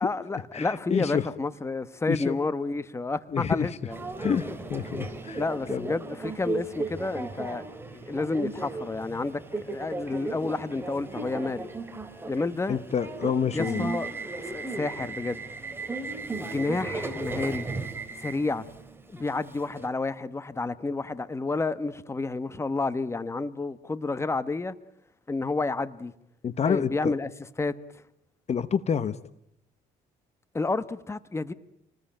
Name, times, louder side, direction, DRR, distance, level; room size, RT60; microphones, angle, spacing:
voice 1, 0.0-4.0 5.4-7.7 7.9-11.7 12.3-12.8 13.5-14.1 14.4-15.5 16.4-17.7 18.2-18.7 19.1-24.7 25.3-26.1 26.6-27.3 27.6-27.8 30.5-31.5, left 3 dB, 15° left, 1.2 m, -30 dB
voice 2, 0.5-1.2 2.1-2.4 3.3-3.7 4.2-5.4 5.7-5.8 12.7-13.9 26.4-27.1 28.5-29.2, left 7 dB, 40° left, 1.2 m, -28 dB
Subway metro underground, 3.9-19.9, right 3 dB, 15° right, 3.2 m, -36 dB
28.0 x 20.0 x 9.0 m
cardioid pair, 110°, 17 cm